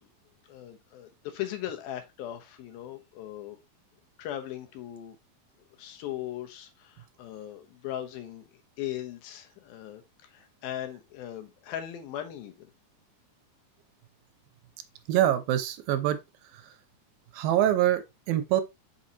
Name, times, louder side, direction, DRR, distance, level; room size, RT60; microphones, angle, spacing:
voice 1, 0.5-3.6 4.2-5.2 5.8-8.4 8.8-12.7, left 12 dB, 80° left, 2.8 m, -38 dB
voice 2, 15.1-16.2 16.5-16.7 17.3-18.6, right 12 dB, 85° right, 2.5 m, -25 dB
6.4 x 5.6 x 2.9 m
omnidirectional pair, 4.3 m